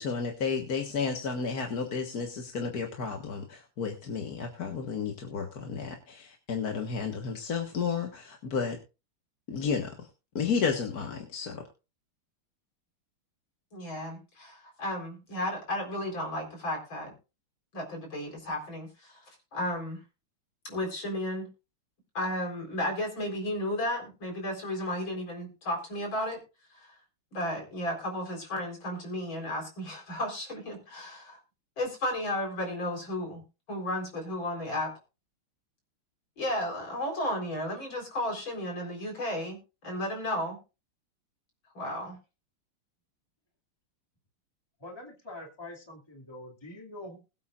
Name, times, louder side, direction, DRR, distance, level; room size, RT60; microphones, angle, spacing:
voice 1, 0.0-8.8 9.5-10.1 10.4-11.6, left 5 dB, 50° left, 2 dB, 1.9 m, -32 dB
voice 2, 13.7-17.1 17.7-19.2 19.5-20.0 20.6-21.5 22.1-26.4 26.8-26.9 27.3-31.4 31.8-33.4 33.7-34.9 36.4-40.6 41.7-42.2, left 1 dB, 65° left, 2 dB, 5.0 m, -33 dB
voice 3, 44.8-47.2, left 2 dB, 10° left, 1 dB, 2.4 m, -44 dB
21.5 x 8.6 x 2.5 m, 0.31 s
omnidirectional pair, 2.3 m